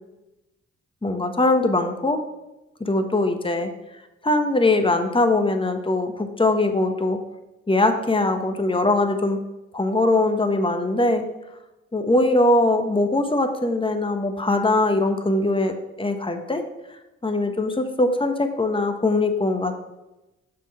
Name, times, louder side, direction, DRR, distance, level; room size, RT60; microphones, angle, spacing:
voice 1, 1.0-2.2 2.8-3.7 4.2-7.2 7.7-9.4 9.7-11.2 11.9-16.6 17.2-19.8, left 2 dB, 15° left, 6 dB, 1.2 m, -21 dB
5.9 x 5.8 x 5.7 m, 0.98 s
hypercardioid pair, 45°, 30 cm